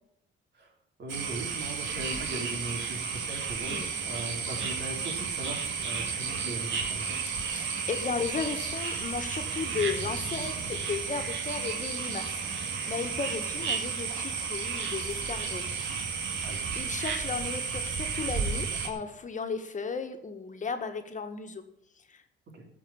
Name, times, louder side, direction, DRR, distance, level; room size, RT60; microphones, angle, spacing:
voice 1, 1.0-7.2 16.4-16.6 22.5-22.6, right 2 dB, 55° right, 1 dB, 3.7 m, -39 dB
sound 1, 1.1-18.9, right 5 dB, 75° right, 2.0 m, -33 dB
voice 2, 7.4-12.4 12.9-16.0 16.7-21.6 22.1-22.2, left 5 dB, 40° left, 6 dB, 1.6 m, -35 dB
14.5 x 5.4 x 8.7 m, 0.75 s
cardioid pair, 90°, 20 cm